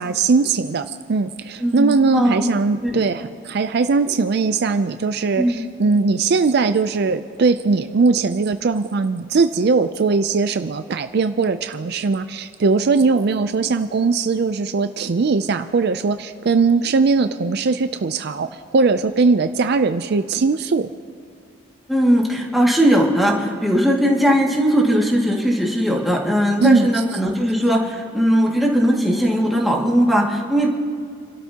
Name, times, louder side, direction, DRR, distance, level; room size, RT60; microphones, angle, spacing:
voice 1, 0.0-20.9 26.6-26.9, right 4 dB, 55° right, 10 dB, 0.4 m, -20 dB
voice 2, 1.6-2.5 2.8-3.0 5.4-5.6 21.9-30.7, equal, ahead, -3 dB, 2.1 m, -18 dB
28.5 x 12.5 x 2.9 m, 2.3 s
head